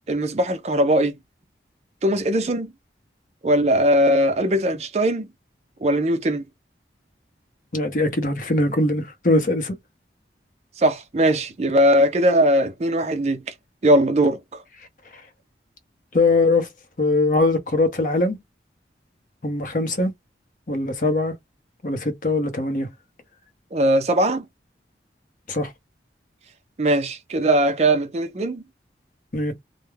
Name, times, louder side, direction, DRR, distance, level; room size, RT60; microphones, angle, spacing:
voice 1, 0.1-1.1 2.0-2.7 3.4-5.3 5.8-6.4 10.8-13.4 13.8-14.4 23.7-24.5 26.8-28.6, right 1 dB, 35° right, 0.4 m, -20 dB
voice 2, 7.7-9.8 16.1-16.7 17.0-18.4 19.4-20.1 20.7-21.3 21.8-22.9 25.5-25.7 29.3-29.5, left 2 dB, 45° left, 0.7 m, -21 dB
2.3 x 2.1 x 3.1 m
head